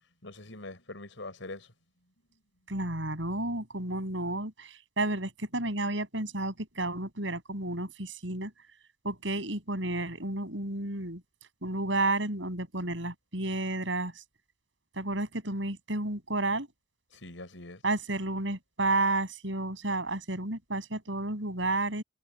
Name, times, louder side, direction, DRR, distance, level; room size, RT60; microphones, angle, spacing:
voice 1, 0.2-1.7 17.1-17.8, left 2 dB, 80° left, 4.9 m, -43 dB
voice 2, 2.7-8.5 9.0-11.2 11.6-14.2 15.0-16.7 17.8-22.0, right 2 dB, 75° right, 6.9 m, -31 dB
head